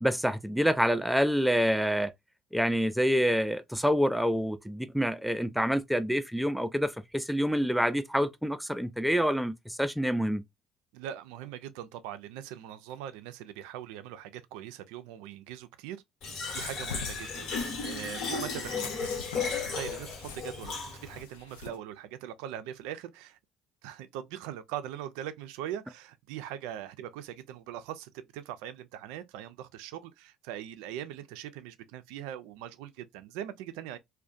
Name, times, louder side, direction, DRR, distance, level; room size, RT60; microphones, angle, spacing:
voice 1, 0.0-2.1 2.5-10.4, equal, ahead, 0.4 m, -27 dB
voice 2, 10.9-16.0 16.5-17.5 17.8-18.9 19.7-23.4 23.8-34.0, right 11 dB, 75° right, 0.3 m, -41 dB
Fill (with liquid), 16.2-21.2, left 4 dB, 60° left, 1.0 m, -35 dB
sound 1, 16.6-21.8, left 6 dB, 90° left, 0.4 m, -44 dB
2.3 x 2.1 x 2.5 m
hypercardioid pair, 60°, 0 cm